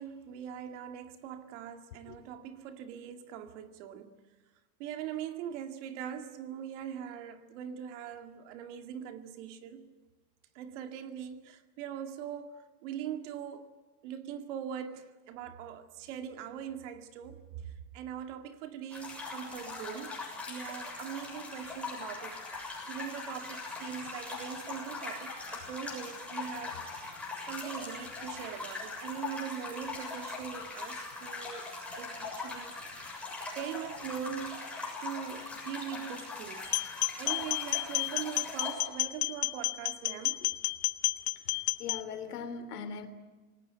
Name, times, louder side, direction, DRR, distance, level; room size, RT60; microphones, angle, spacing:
voice 1, 0.0-4.2 4.8-9.9 10.6-13.7 14.0-20.2 20.5-22.4 22.9-27.1 27.5-31.7 32.0-33.0 33.6-34.6 35.0-36.8 37.2-40.4, right 9 dB, 50° right, 2.2 m, -41 dB
sound 1, 18.9-38.7, left 3 dB, 5° left, 7.0 m, -41 dB
sound 2, 36.6-42.0, left 22 dB, 30° left, 0.7 m, -31 dB
voice 2, 41.8-43.1, left 6 dB, 75° left, 3.3 m, -39 dB
27.0 x 19.0 x 9.3 m
supercardioid pair, 145°, 47 cm